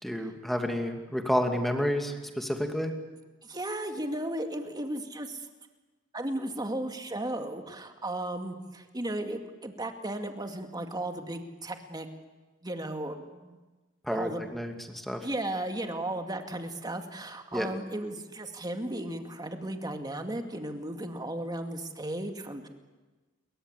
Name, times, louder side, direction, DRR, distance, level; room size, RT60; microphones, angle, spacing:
voice 1, 0.0-2.9 14.0-15.3 17.5-17.7, equal, ahead, 4 dB, 2.6 m, -30 dB
voice 2, 3.4-5.5 6.1-12.1 12.6-13.6 14.1-14.5 15.2-22.7, right 1 dB, 20° right, 5 dB, 2.3 m, -35 dB
28.5 x 23.0 x 8.3 m, 1.2 s
head